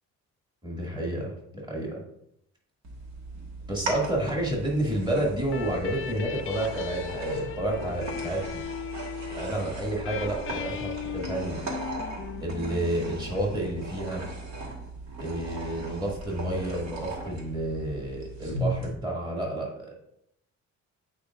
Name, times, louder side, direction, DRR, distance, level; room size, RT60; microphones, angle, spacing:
voice 1, 0.6-2.0 3.7-8.6 9.4-11.6 12.4-14.2 15.2-19.9, right 1 dB, 15° right, -2 dB, 2.1 m, -30 dB
sound 1, 2.8-18.9, right 2 dB, 65° right, 1.5 m, -37 dB
sound 2, 5.5-14.0, left 10 dB, 45° left, 0.4 m, -38 dB
8.5 x 4.6 x 2.5 m, 0.76 s
cardioid pair, 90°, 30 cm